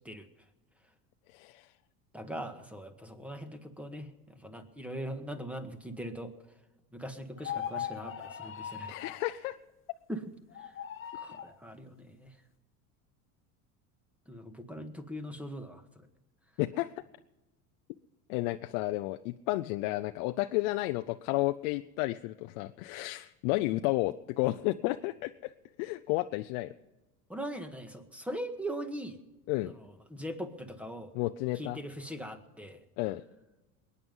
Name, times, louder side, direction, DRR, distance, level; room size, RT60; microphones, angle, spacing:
voice 1, 1.3-1.7 8.9-9.6 16.6-16.9 18.3-25.5 25.8-26.7 29.5-29.7 31.1-31.8 33.0-33.2, left 18 dB, 70° left, 8 dB, 0.7 m, -32 dB
voice 2, 2.1-6.3 6.9-8.9 10.1-10.7 11.1-12.4 14.3-16.1 27.3-29.2 29.6-31.1 31.5-32.8, equal, 5° right, 7 dB, 1.7 m, -41 dB
sound 1, 7.4-9.2 10.5-11.5, left 9 dB, 30° left, 1.1 m, -39 dB
21.5 x 9.7 x 5.5 m, 1.1 s
supercardioid pair, 105°, 43 cm